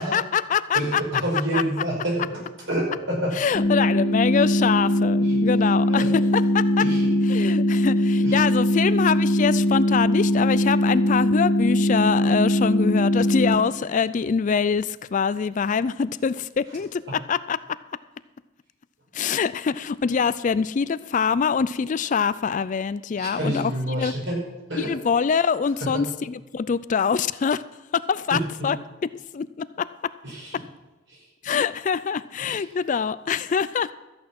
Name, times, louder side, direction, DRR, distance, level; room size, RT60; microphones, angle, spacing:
voice 1, 0.0-1.0 1.5-1.6 3.4-6.8 7.3-17.6 19.1-24.1 24.8-27.6 27.9-28.8 29.0-30.1 31.4-33.9, left 6 dB, 40° left, 16 dB, 0.3 m, -24 dB
voice 2, 0.7-2.4 2.7-3.3 3.7-3.8 5.2-5.4 5.9-6.1 6.8-7.4 8.2-8.4 17.1-17.2 23.2-24.4 24.7-25.0 25.8-26.0 28.3-28.7 30.2-30.5 31.1-31.2 32.4-32.6, right 1 dB, 65° right, -2 dB, 5.4 m, -28 dB
sound 1, 3.5-13.6, equal, 70° left, 2.2 m, -21 dB
13.5 x 8.7 x 5.9 m, 1.1 s
head